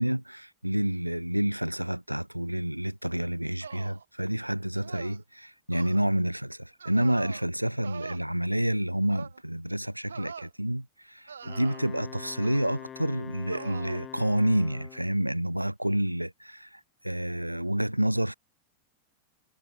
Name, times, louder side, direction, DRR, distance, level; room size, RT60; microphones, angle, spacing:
voice 1, 0.0-18.3, right 1 dB, 90° right, 1.2 m, -29 dB
sound 1, 3.6-4.0 4.8-5.2 5.7-6.0 6.8-7.5 7.8-8.2 9.1-9.4 10.1-10.5 11.3-12.0 12.4-12.8 13.5-14.0, right 6 dB, 70° right, 1.4 m, -43 dB
Wind instrument woodwind instrument, 11.4-15.2, left 9 dB, 25° left, 3.8 m, -45 dB
figure-of-eight pair, 90°, 0 cm